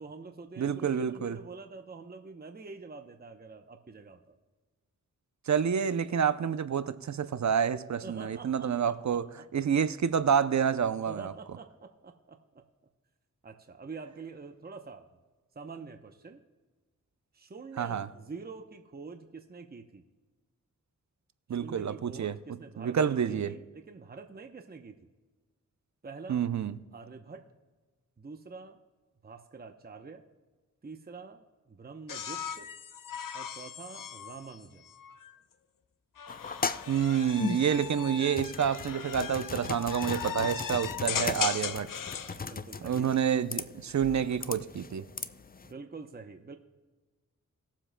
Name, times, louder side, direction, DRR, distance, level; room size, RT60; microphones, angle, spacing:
voice 1, 0.0-4.3 8.0-9.5 11.1-12.6 13.4-15.0 15.5-16.4 17.3-20.1 21.5-25.1 26.0-26.5 26.9-27.5 28.2-28.8 29.2-30.2 30.8-32.7 33.3-34.9 42.2-43.1 45.6-46.6, right 4 dB, 30° right, 0.8 m, -46 dB
voice 2, 0.6-1.4 5.5-9.3 9.5-11.3 17.8-18.1 21.5-22.4 22.8-23.5 26.3-26.8 36.9-41.9 42.8-45.0, right 8 dB, 60° right, 0.5 m, -28 dB
sound 1, 32.1-35.4 36.2-42.4 43.8-44.4, left 8 dB, 75° left, 0.6 m, -38 dB
sound 2, 36.3-45.7, left 5 dB, 30° left, 0.4 m, -38 dB
20.0 x 7.4 x 2.2 m
wide cardioid pair, 65°, 33 cm